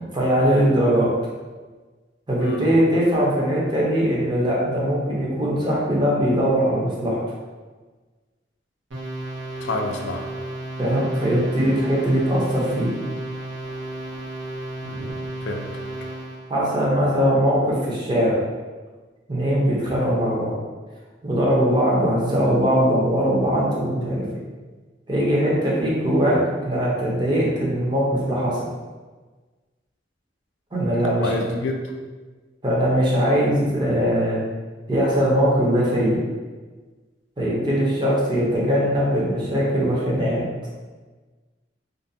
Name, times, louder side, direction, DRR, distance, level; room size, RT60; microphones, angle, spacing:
voice 1, 0.1-1.1 2.3-7.2 10.8-12.9 16.5-18.4 19.3-20.5 21.2-24.3 25.1-26.4 26.6-28.7 30.7-31.3 32.6-34.4 34.9-36.2 37.4-40.4, equal, 25° right, -6 dB, 0.6 m, -21 dB
voice 2, 2.4-2.7 9.6-10.3 14.8-15.1 15.4-15.7 31.2-31.8, left 2 dB, 85° left, 3 dB, 0.4 m, -28 dB
sound 1, 8.9-16.5, right 1 dB, 80° right, 0.8 m, -33 dB
2.5 x 2.2 x 2.7 m, 1.3 s
head